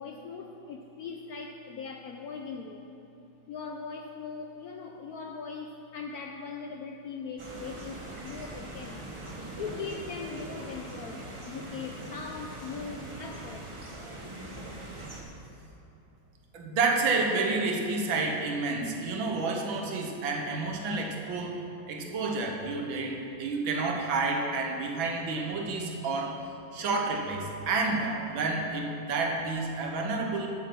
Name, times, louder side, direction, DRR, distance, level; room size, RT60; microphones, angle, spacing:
voice 1, 0.0-2.9 3.5-9.0 9.6-13.7, left 5 dB, 70° left, 2 dB, 0.9 m, -40 dB
sound 1, 7.4-15.2, right 1 dB, 25° right, 0.7 m, -42 dB
voice 2, 16.5-21.6 21.9-26.5 26.7-30.5, right 3 dB, 80° right, 1 dB, 1.9 m, -30 dB
9.0 x 8.5 x 5.9 m, 2.8 s
omnidirectional pair, 2.1 m